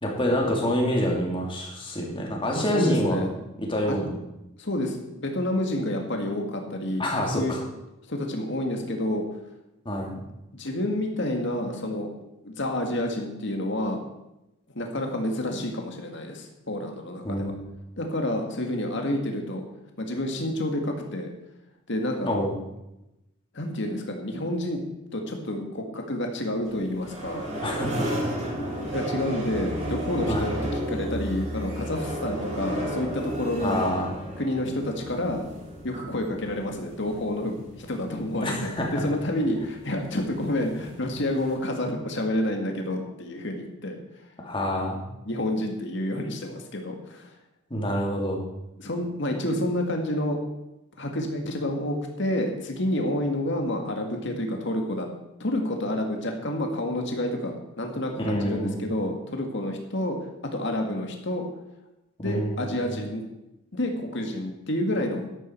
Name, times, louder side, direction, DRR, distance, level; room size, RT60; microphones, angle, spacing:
voice 1, 0.0-3.2 3.6-4.1 7.0-7.6 9.8-10.1 17.2-17.5 22.3-22.5 27.6-28.1 30.3-30.5 33.6-34.1 38.4-38.9 44.4-45.0 47.7-48.4 58.2-58.8 62.2-62.9, equal, 25° left, -1 dB, 2.8 m, -27 dB
voice 2, 2.7-3.3 3.9-4.0 4.6-7.1 7.3-7.5 8.1-9.2 10.1-10.2 10.5-12.1 12.4-14.0 14.7-17.5 18.0-19.6 20.0-21.3 21.9-22.4 23.5-24.8 25.1-27.4 28.9-30.5 30.9-33.8 34.4-35.4 35.8-44.0 45.2-47.3 48.8-50.4 51.0-55.1 55.4-60.2 60.5-61.5 62.2-63.2 63.7-65.3, left 1 dB, 60° left, 3 dB, 2.1 m, -29 dB
sound 1, 26.6-41.5, equal, 35° right, 5.6 m, -34 dB
12.5 x 12.0 x 4.6 m, 0.91 s
head